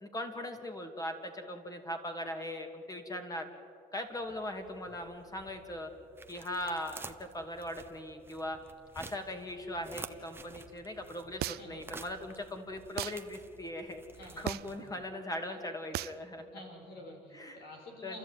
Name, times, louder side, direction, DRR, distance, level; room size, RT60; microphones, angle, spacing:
voice 1, 0.0-3.5 3.9-5.9 6.3-8.6 8.9-14.0 14.4-16.4 17.3-17.6 18.0-18.1, left 1 dB, 20° left, 5 dB, 2.8 m, -39 dB
sound 1, 4.1-15.2, right 3 dB, 15° right, 1.2 m, -51 dB
sound 2, 11.4-11.9 13.0-13.2 14.5-14.8 15.9-16.2, right 16 dB, 70° right, 0.5 m, -36 dB
voice 2, 14.1-14.7 15.5-15.6 16.5-18.2, left 1 dB, 75° left, 2 dB, 5.1 m, -49 dB
30.0 x 14.0 x 9.2 m, 2.6 s
cardioid pair, 110°, 17 cm